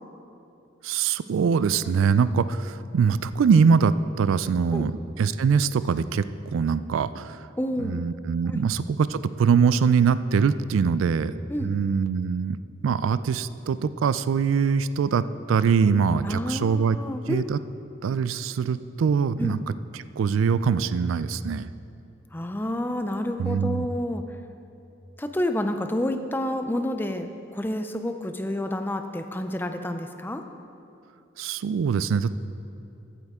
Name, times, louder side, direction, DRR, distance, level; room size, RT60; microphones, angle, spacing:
voice 1, 0.8-6.3 6.5-7.4 7.8-8.8 9.1-11.3 11.6-12.6 12.8-17.0 17.2-17.6 18.0-19.6 19.9-21.7 23.4-23.9 31.4-32.3, right 6 dB, 85° right, 15 dB, 0.3 m, -23 dB
voice 2, 7.6-8.0 8.5-8.6 11.5-11.7 16.2-17.4 19.4-19.6 22.3-24.2 25.2-30.4, left 1 dB, 10° left, 7 dB, 0.4 m, -29 dB
14.5 x 9.1 x 3.6 m, 2.7 s
head